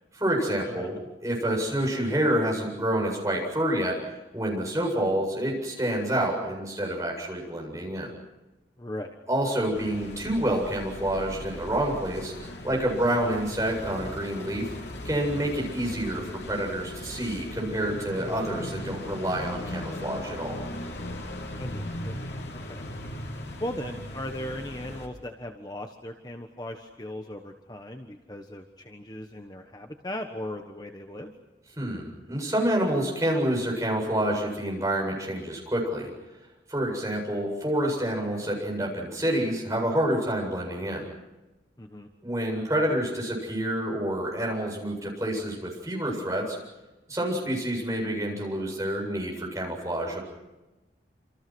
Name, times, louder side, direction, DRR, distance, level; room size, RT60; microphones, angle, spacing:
voice 1, 0.1-0.9 1.2-4.0 4.3-8.1 9.3-12.3 12.6-14.7 15.0-20.6 31.8-36.1 36.7-41.0 42.2-46.6 47.1-50.2, right 1 dB, 20° right, -1 dB, 7.9 m, -28 dB
voice 2, 0.6-1.0 8.8-9.2 21.6-22.2 22.5-22.8 23.6-31.3 41.8-42.1, left 1 dB, 20° left, 4 dB, 1.3 m, -38 dB
sound 1, 9.7-25.1, left 1 dB, 80° left, 3.6 m, -38 dB
28.0 x 27.0 x 6.3 m, 1.1 s
head